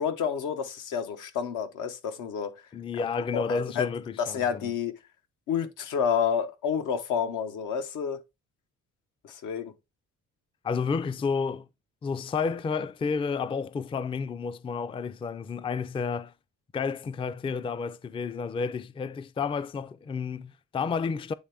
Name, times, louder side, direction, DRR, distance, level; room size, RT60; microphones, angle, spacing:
voice 1, 0.0-2.6 2.9-3.0 3.3-3.9 4.2-5.0 5.5-8.2 9.2-9.7, left 7 dB, 85° left, 1.1 m, -29 dB
voice 2, 2.7-4.7 10.6-11.7 12.0-16.3 16.7-21.3, left 5 dB, 20° left, 0.3 m, -31 dB
8.6 x 3.4 x 3.4 m
cardioid pair, 90°, 30 cm